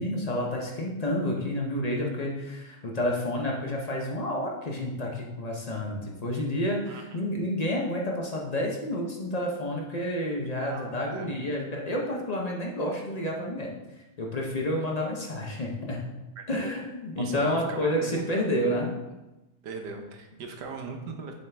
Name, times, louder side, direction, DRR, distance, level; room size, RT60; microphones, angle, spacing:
voice 1, 0.0-13.7 14.2-16.1 16.5-18.9, left 1 dB, 40° left, -1 dB, 0.6 m, -30 dB
voice 2, 6.9-7.3 10.6-11.3 16.4-16.7 17.2-18.5 19.6-21.3, right 4 dB, 85° right, 4 dB, 1.4 m, -39 dB
7.1 x 4.1 x 3.4 m, 1.0 s
omnidirectional pair, 1.8 m